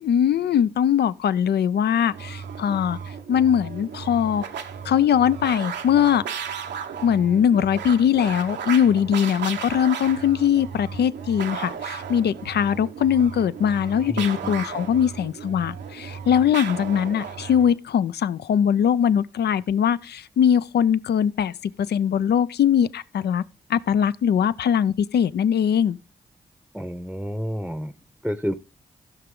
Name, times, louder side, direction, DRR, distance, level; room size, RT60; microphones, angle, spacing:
voice 1, 0.0-3.0 3.3-4.4 4.9-6.2 7.0-21.5 21.8-23.4 23.7-26.0, left 8 dB, 65° left, 0.5 m, -21 dB
sound 1, 2.1-17.8, right 7 dB, 80° right, 0.9 m, -35 dB
voice 2, 14.1-14.7 26.7-27.9 28.2-28.5, equal, ahead, 0.8 m, -30 dB
14.5 x 5.9 x 3.7 m
supercardioid pair, 45°, 18 cm